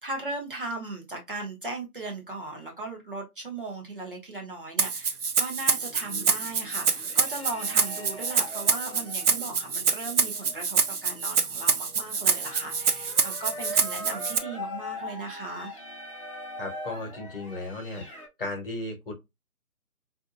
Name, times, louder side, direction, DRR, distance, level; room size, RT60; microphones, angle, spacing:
voice 1, 0.0-15.7, right 2 dB, 35° right, 0.8 m, -37 dB
Rattle (instrument), 4.8-14.4, right 6 dB, 80° right, 0.7 m, -26 dB
sound 1, 5.7-18.3, left 1 dB, 25° left, 0.6 m, -42 dB
voice 2, 16.6-18.1 18.4-19.1, left 2 dB, 40° left, 1.1 m, -35 dB
4.2 x 2.6 x 2.5 m
figure-of-eight pair, 155°, 44 cm